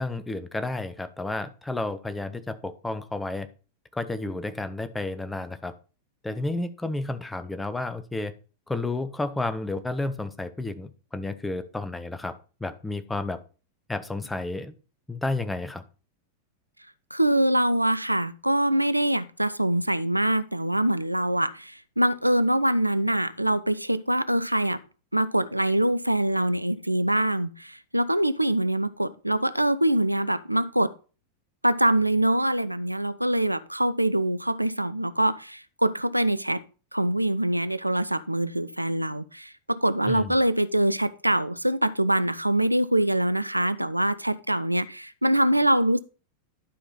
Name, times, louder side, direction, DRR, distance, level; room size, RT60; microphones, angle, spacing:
voice 1, 0.0-3.5 3.9-5.7 6.2-8.3 8.7-13.4 13.9-14.7 15.1-15.8 40.1-40.3, left 2 dB, 10° left, 0.8 m, -31 dB
voice 2, 17.1-24.8 25.1-30.9 31.6-36.6 36.9-46.0, right 1 dB, 85° right, 0.4 m, -24 dB
11.5 x 4.9 x 4.0 m
figure-of-eight pair, 90°, 0 cm